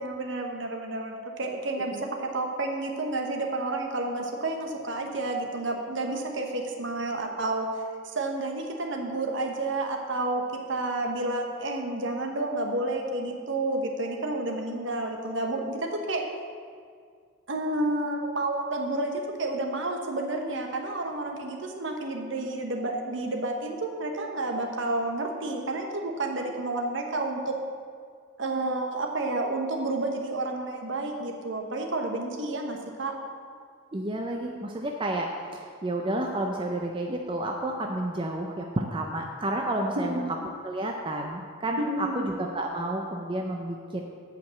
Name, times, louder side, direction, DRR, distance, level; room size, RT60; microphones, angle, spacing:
voice 1, 0.0-7.7 8.1-16.2 17.5-27.6 28.4-33.1 40.0-40.3 41.8-42.3, right 2 dB, 60° right, 2 dB, 1.1 m, -30 dB
voice 2, 33.9-40.2 40.6-44.0, right 1 dB, 25° right, 1 dB, 0.5 m, -31 dB
8.4 x 5.1 x 7.7 m, 2.1 s
head